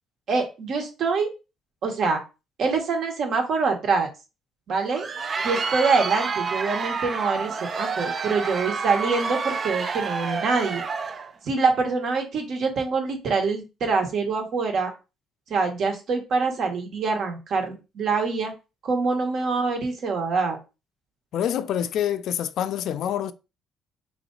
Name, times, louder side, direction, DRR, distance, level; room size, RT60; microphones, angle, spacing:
voice 1, 0.3-1.3 1.8-2.2 2.6-4.1 4.7-5.1 5.4-10.8 11.4-14.9 15.5-18.5 18.8-20.6, right 4 dB, 60° right, 1.2 m, -25 dB
Crowd, 4.8-11.3, right 4 dB, 40° right, 0.5 m, -29 dB
voice 2, 21.3-23.3, left 10 dB, 70° left, 0.3 m, -26 dB
3.8 x 3.0 x 3.9 m
cardioid pair, 110°, 0 cm